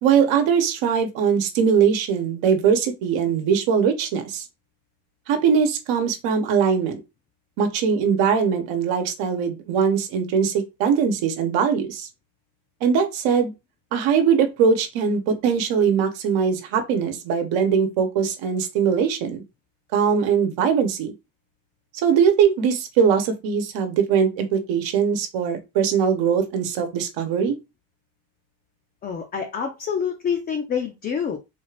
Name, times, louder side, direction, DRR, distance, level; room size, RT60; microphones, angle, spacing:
voice 1, 0.0-4.4 5.3-7.0 7.6-12.1 12.8-13.5 13.9-19.4 19.9-21.1 22.0-27.6, right 7 dB, 75° right, 1.0 m, -21 dB
voice 2, 29.0-31.4, left 7 dB, 25° left, 0.3 m, -27 dB
4.0 x 2.4 x 3.2 m
cardioid pair, 155°, 45 cm